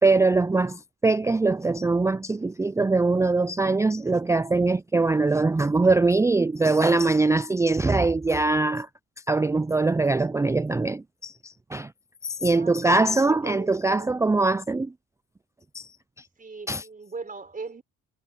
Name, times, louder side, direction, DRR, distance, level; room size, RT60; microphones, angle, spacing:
voice 1, 0.0-8.9 9.3-11.9 12.2-14.9 15.7-15.9 16.7-16.8, right 3 dB, 10° right, 0.4 m, -22 dB
voice 2, 12.5-14.1 16.4-17.8, right 4 dB, 25° right, 4.6 m, -39 dB
cardioid pair, 90°, 30 cm